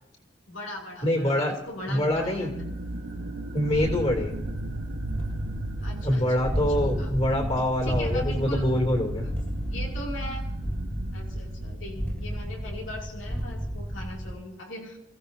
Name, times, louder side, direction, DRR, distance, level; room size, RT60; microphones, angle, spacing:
voice 1, 0.5-2.5 5.8-7.1 7.8-8.7 9.2-9.3 9.6-10.4 11.1-15.0, left 1 dB, 85° left, -2 dB, 2.7 m, -39 dB
voice 2, 1.0-1.5 1.9-2.5 3.5-4.4 6.0-9.3, left 1 dB, 30° left, 2 dB, 2.7 m, -25 dB
sound 1, 1.8-12.5, right 1 dB, 80° right, 1.0 m, -36 dB
sound 2, 3.7-14.3, equal, 10° left, 2.0 m, -33 dB
28.5 x 15.5 x 2.7 m, 0.83 s
head